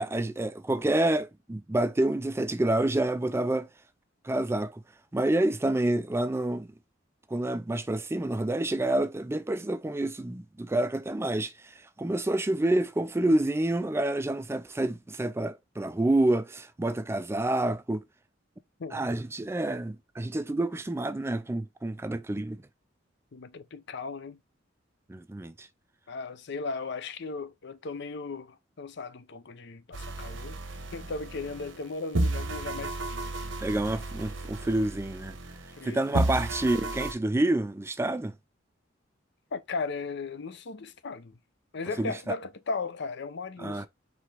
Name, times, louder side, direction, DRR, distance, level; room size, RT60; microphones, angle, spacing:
voice 1, 0.0-3.7 4.2-4.8 5.1-6.7 7.3-18.0 18.9-22.6 25.1-25.7 33.6-35.4 35.8-38.3 42.0-42.3 43.6-43.9, right 1 dB, 15° right, 0.4 m, -28 dB
voice 2, 23.3-24.4 26.1-30.6 30.9-33.6 35.8-36.4 39.5-41.3 41.7-43.9, left 4 dB, 60° left, 0.6 m, -37 dB
sound 1, 29.9-31.8 32.1-35.8 36.1-37.1, right 2 dB, 75° right, 0.9 m, -33 dB
4.8 x 3.4 x 3.3 m
head